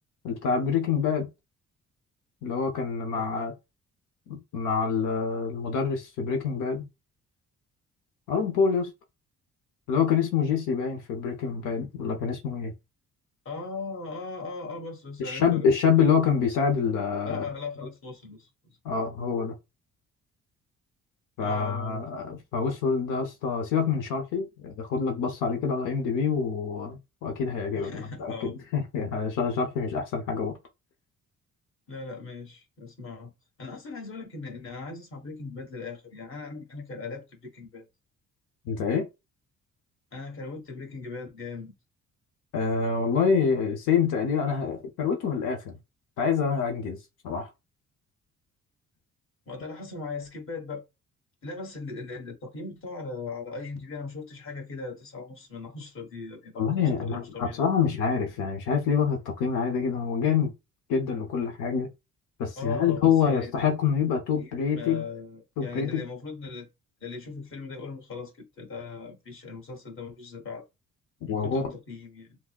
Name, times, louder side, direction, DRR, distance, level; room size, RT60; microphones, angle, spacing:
voice 1, 0.2-1.3 2.4-3.5 4.3-6.8 8.3-8.9 9.9-12.7 15.2-17.4 18.8-19.5 21.4-30.6 38.7-39.1 42.5-45.7 46.2-47.0 47.2-47.5 56.6-60.5 60.9-61.9 62.4-65.1 65.6-66.0 71.3-71.6, left 6 dB, 90° left, 0.7 m, -26 dB
voice 2, 3.1-3.5 13.4-15.7 17.3-18.8 21.4-22.0 27.7-28.6 31.9-33.3 33.6-37.9 40.1-41.7 49.5-50.8 51.4-57.6 62.6-63.5 64.4-66.7 67.0-70.6 71.3-72.4, left 4 dB, 45° left, 1.4 m, -39 dB
5.8 x 2.0 x 2.3 m
cardioid pair, 90°, 30 cm